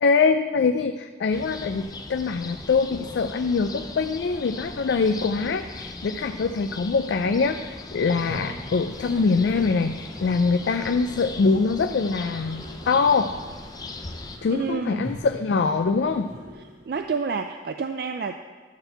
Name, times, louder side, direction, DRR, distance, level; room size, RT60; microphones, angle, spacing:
voice 1, 0.0-13.3 14.4-16.3, left 4 dB, 80° left, 7 dB, 0.4 m, -23 dB
sound 1, 1.3-14.4, left 3 dB, 20° left, 0.5 m, -39 dB
Toilet flush, 8.1-17.2, equal, 75° right, 2.2 m, -43 dB
voice 2, 14.5-15.1 16.9-18.4, right 5 dB, 55° right, 7 dB, 0.3 m, -29 dB
12.0 x 4.5 x 6.6 m, 1.5 s
head